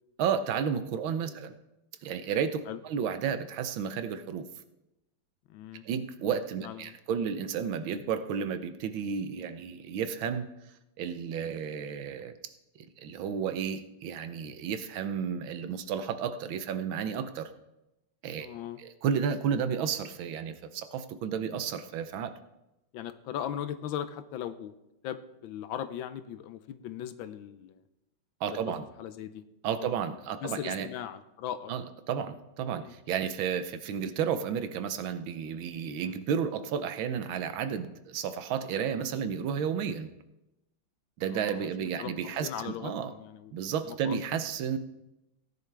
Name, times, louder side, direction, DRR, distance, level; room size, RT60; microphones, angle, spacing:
voice 1, 0.2-1.5 2.0-4.4 5.8-10.5 11.0-12.3 13.0-17.5 18.2-18.5 18.8-22.3 28.4-28.8 29.6-30.9 31.7-40.1 41.2-43.1 43.5-44.8, right 7 dB, 75° right, 10 dB, 1.5 m, -32 dB
voice 2, 5.5-5.8 6.6-7.0 18.4-18.8 22.9-24.7 25.0-27.8 28.5-28.6 29.0-29.4 29.8-30.0 30.4-31.8 32.8-32.9 36.0-36.2 41.3-41.7 42.0-43.5 43.8-44.2, left 10 dB, 75° left, 12 dB, 1.4 m, -39 dB
16.5 x 10.5 x 3.4 m, 0.92 s
omnidirectional pair, 2.2 m